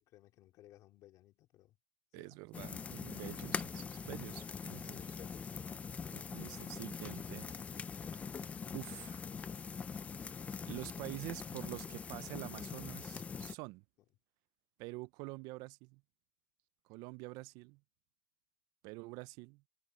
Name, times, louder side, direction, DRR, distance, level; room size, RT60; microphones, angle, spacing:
voice 1, 0.0-1.8 2.1-2.3 4.8-5.6, left 15 dB, 45° left, 3.8 m, -59 dB
voice 2, 2.1-5.0 6.1-7.5 8.7-9.3 10.3-10.4 10.7-13.8 14.8-16.0 16.9-17.8 18.8-19.6, right 24 dB, 55° right, 0.4 m, -47 dB
sound 1, 2.5-13.6, left 6 dB, 15° left, 0.4 m, -43 dB
supercardioid pair, 135°, 8 cm